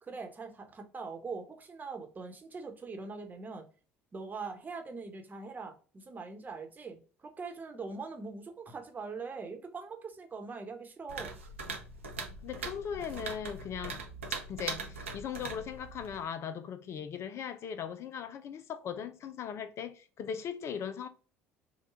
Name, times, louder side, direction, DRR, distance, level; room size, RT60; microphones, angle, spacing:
voice 1, 0.0-3.6 4.1-11.4, right 4 dB, 25° right, 1.1 m, -42 dB
sound 1, 11.1-16.3, right 4 dB, 85° right, 0.8 m, -41 dB
voice 2, 12.4-14.0 14.5-21.1, left 8 dB, 45° left, 0.5 m, -39 dB
5.4 x 2.3 x 3.5 m
figure-of-eight pair, 60°, 7 cm